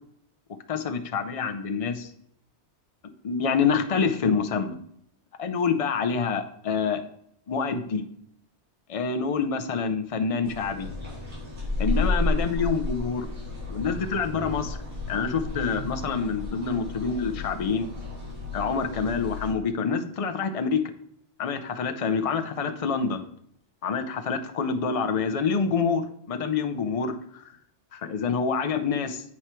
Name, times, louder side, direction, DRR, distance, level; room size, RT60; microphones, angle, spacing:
voice 1, 0.7-2.1 3.2-4.8 5.4-7.0 7.5-8.0 8.9-10.9 11.8-13.3 13.7-14.8 15.1-17.9 18.5-20.8 21.4-23.2 23.8-27.4 27.9-29.2, left 5 dB, 40° left, 7 dB, 0.6 m, -27 dB
sound 1, 10.4-19.5, left 2 dB, 85° right, 3.3 m, -32 dB
8.5 x 4.7 x 4.4 m, 0.68 s
omnidirectional pair, 1.2 m